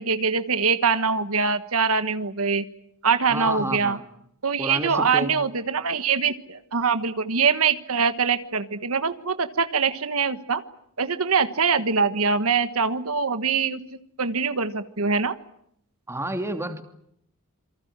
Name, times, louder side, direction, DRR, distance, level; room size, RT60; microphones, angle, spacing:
voice 1, 0.0-2.6 3.0-4.0 4.4-10.6 11.0-13.8 14.2-15.3, right 5 dB, 85° right, 11 dB, 1.4 m, -23 dB
voice 2, 3.3-4.0 4.6-5.3 16.1-16.8, right 1 dB, 10° right, 5 dB, 2.7 m, -30 dB
27.5 x 24.0 x 7.5 m, 0.74 s
head